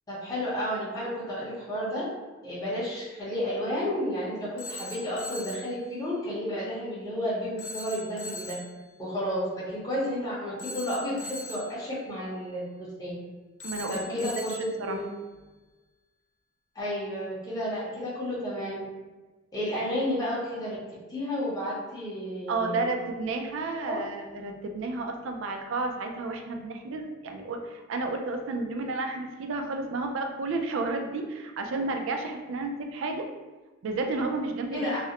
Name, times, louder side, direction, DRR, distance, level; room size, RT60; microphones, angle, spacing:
voice 1, 0.1-2.1 2.4-8.6 9.0-12.6 13.0-13.1 13.9-15.0 16.7-18.8 19.5-20.8 21.1-22.9 23.9-24.0 34.7-35.0, equal, 20° left, -8 dB, 0.6 m, -31 dB
Telephone, 4.6-5.7 7.6-8.7 10.6-11.8 13.6-14.8, left 2 dB, 85° left, 0.4 m, -40 dB
voice 2, 13.6-14.3 14.8-15.0 22.5-33.2 33.8-34.9, right 3 dB, 65° right, 4 dB, 0.3 m, -31 dB
2.4 x 2.0 x 2.8 m, 1.2 s
head